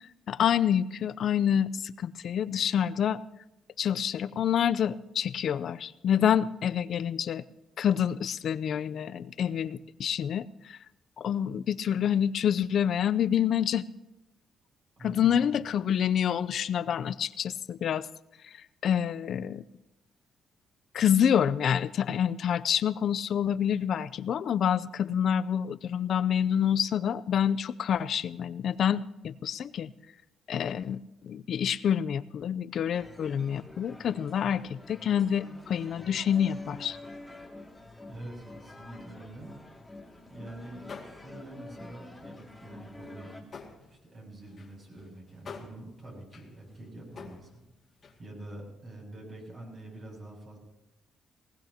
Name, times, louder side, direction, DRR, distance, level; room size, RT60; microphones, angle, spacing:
voice 1, 0.3-3.2 3.8-7.4 7.8-10.8 11.2-13.8 15.0-18.1 18.4-18.5 18.8-19.6 20.9-29.9 30.5-37.0, left 9 dB, 65° left, 16 dB, 0.5 m, -27 dB
voice 2, 15.0-15.4 38.1-39.5 40.3-43.5 43.8-47.6 48.2-50.6, right 1 dB, 45° right, -1 dB, 7.4 m, -45 dB
sound 1, 32.9-43.4, left 2 dB, 5° left, 2.3 m, -48 dB
sound 2, 40.1-40.3 40.6-41.5 41.8-44.1 44.4-48.2, left 5 dB, 45° left, 2.2 m, -49 dB
19.5 x 18.5 x 2.9 m, 0.94 s
cardioid pair, 90°, 0 cm